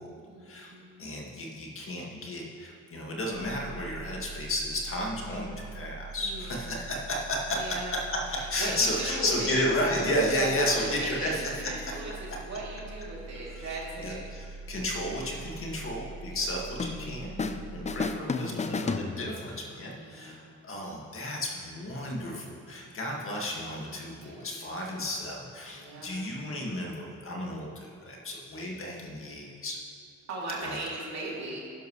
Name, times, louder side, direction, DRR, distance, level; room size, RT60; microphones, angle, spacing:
voice 1, 0.1-1.2 6.2-6.9 7.5-8.0 8.3-9.6 10.3-14.3 16.3-16.6 19.5-19.6 19.9-20.6 22.7-23.2 23.9-25.2 25.7-26.2 30.3-31.6, right 2 dB, 60° right, -4 dB, 2.9 m, -38 dB
voice 2, 1.0-7.6 7.9-8.2 8.5-11.4 13.6-13.7 14.0-29.8 30.6-30.8, left 1 dB, 45° left, -2 dB, 2.0 m, -33 dB
sound 1, 3.3-18.1, right 3 dB, 90° right, 1.2 m, -44 dB
sound 2, 16.8-17.6 17.9-19.6, left 4 dB, 25° left, 0.5 m, -32 dB
11.0 x 11.0 x 3.2 m, 2.3 s
cardioid pair, 90°, 30 cm